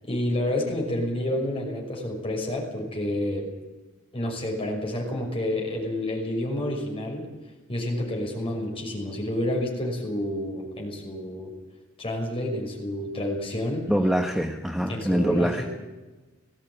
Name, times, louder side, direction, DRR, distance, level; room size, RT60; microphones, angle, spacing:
voice 1, 0.0-3.5 4.1-7.3 7.7-11.5 12.0-13.9 14.9-15.7, left 1 dB, 25° left, 0 dB, 5.9 m, -29 dB
voice 2, 13.9-15.6, equal, ahead, 3 dB, 1.1 m, -24 dB
19.5 x 15.5 x 8.9 m, 1.2 s
head